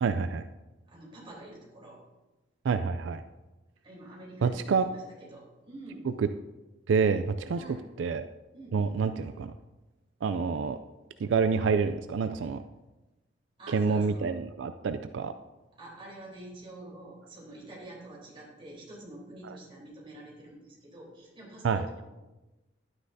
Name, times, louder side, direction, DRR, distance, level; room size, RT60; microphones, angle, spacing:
voice 1, 0.0-0.4 2.6-3.2 4.4-4.9 6.2-6.3 6.9-7.6 8.0-8.3 8.7-9.5 10.2-10.8 11.2-12.6 13.7-15.3 19.4-19.5 21.6-21.8, right 5 dB, 80° right, 10 dB, 0.4 m, -27 dB
voice 2, 0.9-2.0 3.8-6.2 7.5-7.8 8.5-9.0 13.6-14.3 15.8-22.1, right 1 dB, 30° right, -5 dB, 3.7 m, -47 dB
11.5 x 9.7 x 2.7 m, 1.1 s
head